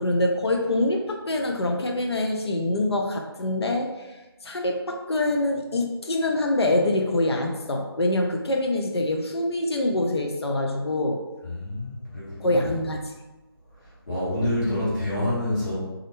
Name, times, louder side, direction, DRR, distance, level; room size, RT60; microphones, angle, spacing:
voice 1, 0.0-4.1 4.4-11.2 12.4-13.1, left 1 dB, 80° left, 2 dB, 0.5 m, -25 dB
voice 2, 11.4-12.6 14.1-15.8, left 1 dB, 45° left, -10 dB, 1.0 m, -27 dB
2.4 x 2.1 x 2.8 m, 1.1 s
figure-of-eight pair, 170°, 13 cm